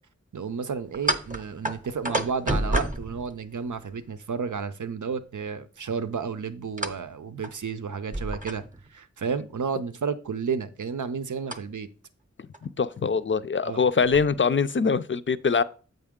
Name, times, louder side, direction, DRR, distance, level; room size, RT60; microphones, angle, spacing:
voice 1, 0.3-8.6 8.9-11.9 13.6-13.8, right 6 dB, 90° right, 0.6 m, -32 dB
sound 1, 0.9-4.0 6.8-7.1 7.4-7.5 8.1-8.9 11.5-11.6 12.5-12.7 13.0-13.1 13.8-14.3, right 1 dB, 25° right, 0.7 m, -30 dB
voice 2, 12.6-15.6, left 5 dB, 40° left, 0.4 m, -23 dB
7.7 x 5.4 x 3.6 m
wide cardioid pair, 50°, 29 cm